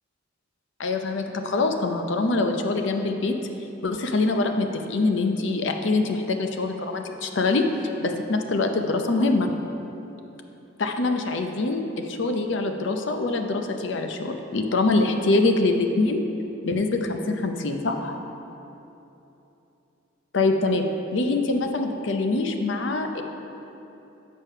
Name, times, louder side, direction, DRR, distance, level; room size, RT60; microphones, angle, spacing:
voice 1, 0.8-3.3 3.8-7.6 8.0-9.5 10.8-16.2 16.6-18.2 20.3-20.8 21.1-23.2, left 3 dB, 60° left, 5 dB, 0.6 m, -24 dB
7.2 x 5.4 x 5.5 m, 3.0 s
head